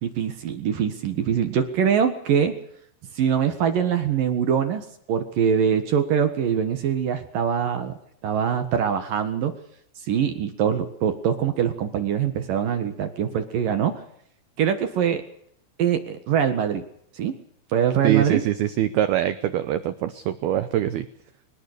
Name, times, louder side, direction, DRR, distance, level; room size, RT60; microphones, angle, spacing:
voice 1, 0.0-2.5 3.2-7.9 8.2-9.5 10.0-13.9 14.6-15.2 15.8-16.8 17.1-17.3 17.7-18.4, right 8 dB, 60° right, 8 dB, 2.5 m, -23 dB
voice 2, 18.0-21.1, right 12 dB, 85° right, 12 dB, 2.2 m, -23 dB
24.0 x 20.0 x 6.8 m, 0.67 s
omnidirectional pair, 5.9 m